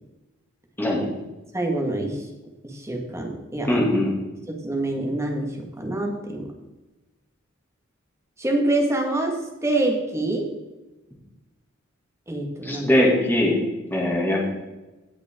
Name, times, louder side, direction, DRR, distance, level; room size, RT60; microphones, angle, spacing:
voice 1, 1.5-2.3 2.6-3.8 4.5-6.5 8.4-9.4 9.6-10.5 12.3-12.9, right 2 dB, 15° right, 1 dB, 1.7 m, -26 dB
voice 2, 3.7-4.1 12.6-13.6 13.9-14.5, left 1 dB, 10° left, -3 dB, 2.4 m, -21 dB
17.5 x 5.8 x 3.7 m, 1.1 s
head